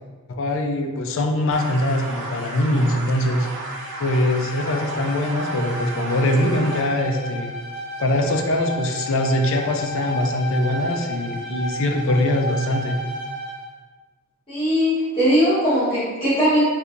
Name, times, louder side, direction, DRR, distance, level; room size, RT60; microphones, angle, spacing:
voice 1, 0.3-3.5 4.0-7.5 8.0-13.0, left 1 dB, 65° left, 4 dB, 0.4 m, -22 dB
sound 1, 1.5-6.8, right 2 dB, 60° right, 0.7 m, -34 dB
Bowed string instrument, 3.2-13.7, equal, 45° left, 1.0 m, -33 dB
voice 2, 14.5-16.6, equal, 25° left, -12 dB, 1.5 m, -19 dB
4.3 x 2.7 x 2.5 m, 1.4 s
head